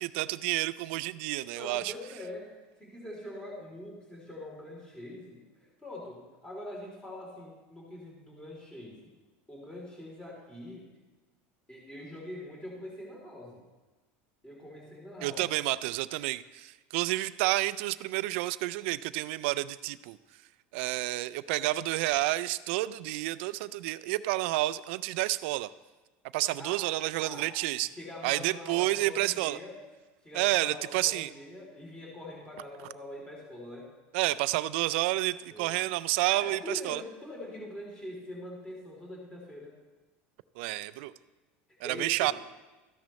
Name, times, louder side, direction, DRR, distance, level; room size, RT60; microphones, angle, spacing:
voice 1, 0.0-1.9 15.2-20.2 20.7-25.7 26.3-27.9 28.2-29.6 30.3-31.3 34.1-37.0 40.6-41.1 41.8-42.3, right 18 dB, 75° right, 17 dB, 0.4 m, -30 dB
voice 2, 1.5-2.5 2.8-5.4 5.8-9.1 9.5-10.8 11.7-13.6 14.4-15.4 26.6-26.8 27.2-27.5 27.9-29.8 30.2-33.9 35.5-35.9 36.3-39.7 41.8-42.3, left 1 dB, 15° left, -3 dB, 3.2 m, -43 dB
13.5 x 10.5 x 3.1 m, 1.2 s
supercardioid pair, 125°, 6 cm